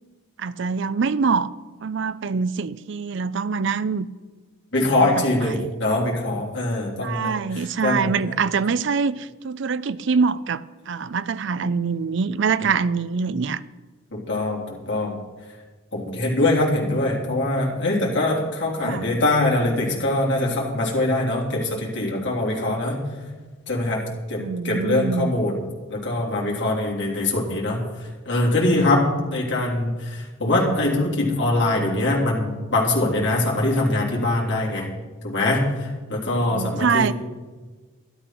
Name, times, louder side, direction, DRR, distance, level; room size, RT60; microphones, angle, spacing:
voice 1, 0.4-1.5 1.8-4.1 4.8-5.7 7.0-13.6 18.8-19.1 24.4-25.3 34.8-34.9 36.4-37.1, right 5 dB, 55° right, 16 dB, 0.5 m, -24 dB
voice 2, 4.7-8.1 14.1-15.2 15.9-23.0 23.7-24.0 24.3-25.6 25.9-29.1 29.3-34.9 35.2-37.1, left 2 dB, 55° left, -3 dB, 3.3 m, -23 dB
12.0 x 12.0 x 5.9 m, 1.4 s
head